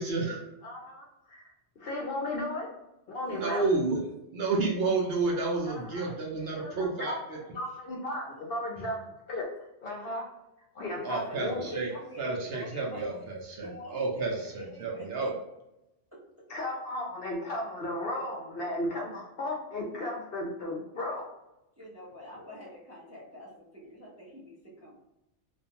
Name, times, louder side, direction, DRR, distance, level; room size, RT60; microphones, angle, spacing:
voice 1, 0.0-0.4 3.3-4.1 4.3-7.4 11.0-11.9 12.2-15.3, right 3 dB, 60° right, -2 dB, 0.7 m, -30 dB
voice 2, 0.6-1.5 1.8-2.7 3.1-3.6 5.7-7.2 7.5-10.2 10.7-11.6 11.9-12.0 16.5-21.3, left 1 dB, 60° left, -1 dB, 0.7 m, -35 dB
voice 3, 11.0-13.0 13.6-15.3 16.1-16.2 21.8-24.9, equal, 20° right, -7 dB, 0.4 m, -46 dB
2.5 x 2.2 x 2.8 m, 0.90 s
omnidirectional pair, 1.3 m